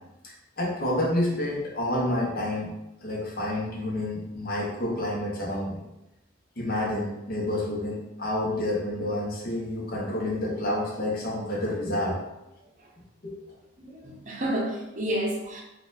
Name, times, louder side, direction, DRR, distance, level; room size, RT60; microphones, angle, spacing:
voice 1, 0.6-2.7 3.0-5.8 6.6-12.2 13.2-13.3, left 1 dB, 45° left, -4 dB, 0.9 m, -29 dB
voice 2, 13.8-15.6, right 1 dB, 40° right, -2 dB, 0.7 m, -30 dB
4.1 x 2.4 x 2.6 m, 0.94 s
head